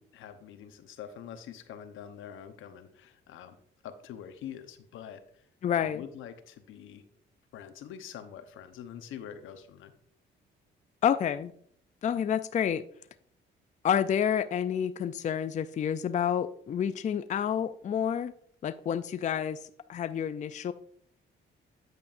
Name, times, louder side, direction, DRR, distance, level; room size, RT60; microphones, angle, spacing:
voice 1, 0.0-3.6 3.8-5.5 5.7-7.0 7.5-9.9, left 9 dB, 85° left, 9 dB, 0.9 m, -45 dB
voice 2, 5.6-6.0 11.0-11.5 12.0-12.8 13.8-18.3 18.6-19.6 19.9-20.7, left 8 dB, 40° left, 13 dB, 0.4 m, -29 dB
9.1 x 8.3 x 2.5 m, 0.63 s
cardioid pair, 90°, 20 cm